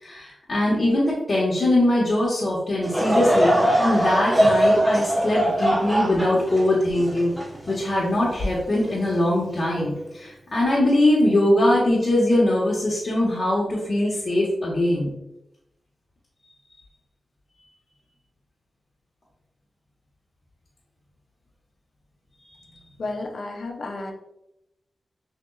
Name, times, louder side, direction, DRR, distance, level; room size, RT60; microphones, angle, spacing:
voice 1, 0.0-7.3 7.7-15.1, left 1 dB, 50° left, -7 dB, 1.2 m, -22 dB
Laughter / Crowd, 2.8-8.3 8.8-8.9 9.8-10.0, right 1 dB, 5° right, 1.2 m, -21 dB
voice 2, 23.0-24.1, left 2 dB, 70° left, 2 dB, 0.7 m, -32 dB
6.5 x 2.7 x 2.3 m, 0.85 s
wide cardioid pair, 80°, 0 cm